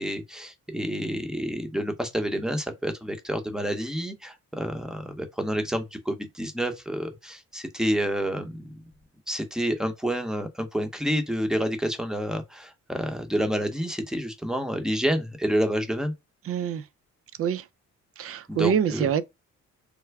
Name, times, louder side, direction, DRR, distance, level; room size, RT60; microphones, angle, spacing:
voice 1, 0.0-8.8 9.3-16.1 18.5-19.1, equal, ahead, 0.8 m, -29 dB
voice 2, 16.4-16.9 17.4-17.7 18.2-19.2, right 8 dB, 50° right, 0.4 m, -25 dB
3.4 x 2.1 x 3.4 m
cardioid pair, 90°, 30 cm